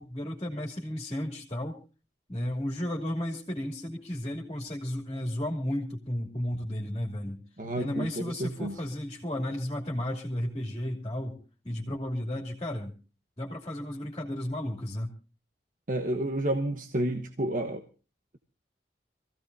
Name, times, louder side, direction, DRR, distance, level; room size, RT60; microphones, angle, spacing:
voice 1, 0.0-1.8 2.3-7.4 7.7-11.4 11.6-12.9 13.4-15.1, left 1 dB, 25° left, 1 dB, 2.8 m, -33 dB
voice 2, 7.6-8.8 15.9-17.8, right 1 dB, 50° right, 4 dB, 1.3 m, -30 dB
26.0 x 16.0 x 2.7 m, 0.34 s
head